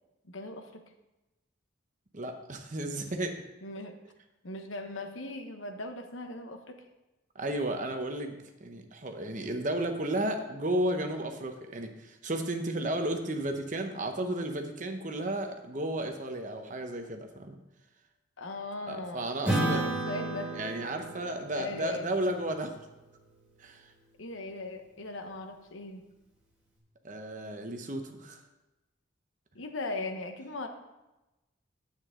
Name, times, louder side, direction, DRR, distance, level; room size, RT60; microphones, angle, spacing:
voice 1, 0.2-0.8 3.6-4.0 4.4-6.8 18.4-20.5 21.5-22.1 24.2-26.1 29.5-30.7, left 2 dB, 90° left, 6 dB, 1.0 m, -39 dB
voice 2, 2.1-3.4 7.3-17.6 18.9-19.8 20.5-22.8 23.6-23.8 27.0-28.4, right 1 dB, 40° right, 5 dB, 0.9 m, -33 dB
Acoustic guitar / Strum, 19.4-24.2, right 1 dB, 5° right, 1.8 m, -34 dB
9.6 x 8.4 x 3.7 m, 1.0 s
head